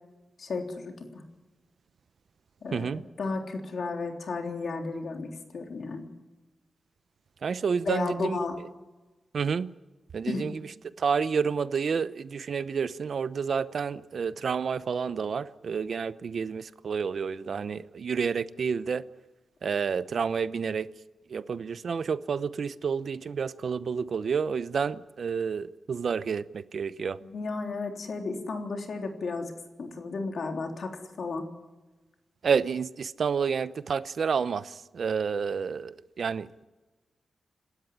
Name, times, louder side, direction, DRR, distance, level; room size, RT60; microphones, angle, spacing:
voice 1, 0.4-1.2 2.6-6.1 7.9-8.6 10.3-10.5 27.2-29.5 29.8-31.5, left 3 dB, 65° left, 3.4 m, -33 dB
voice 2, 2.7-3.0 7.4-8.4 9.3-9.7 10.1-19.1 19.6-20.9 21.3-27.2 32.4-36.6, right 6 dB, 65° right, 0.8 m, -29 dB
27.5 x 13.0 x 9.8 m
wide cardioid pair, 105°, 0 cm